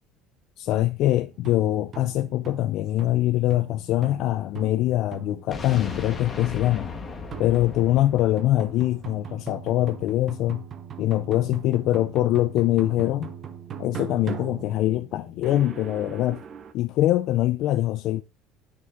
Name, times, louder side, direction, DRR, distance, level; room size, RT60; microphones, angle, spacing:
voice 1, 0.6-6.9 7.4-10.6 11.0-13.3 13.8-16.4 16.7-18.2, left 14 dB, 45° left, 0.4 m, -23 dB
sound 1, 1.3-16.7, right 8 dB, 25° right, 0.8 m, -40 dB
sound 2, 5.5-9.5, left 4 dB, 20° left, 1.3 m, -37 dB
9.4 x 5.9 x 3.8 m
cardioid pair, 180°, 0 cm